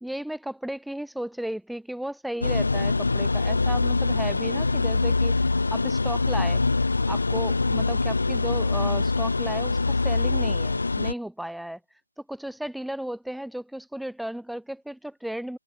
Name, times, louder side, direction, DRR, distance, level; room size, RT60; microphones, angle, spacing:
voice 1, 0.0-5.4 5.7-6.6 7.1-11.8 12.2-15.6, right 1 dB, ahead, 2.2 m, -34 dB
sound 1, 2.4-11.1, left 3 dB, 75° left, 2.1 m, -24 dB
hypercardioid pair, 180°, 0 cm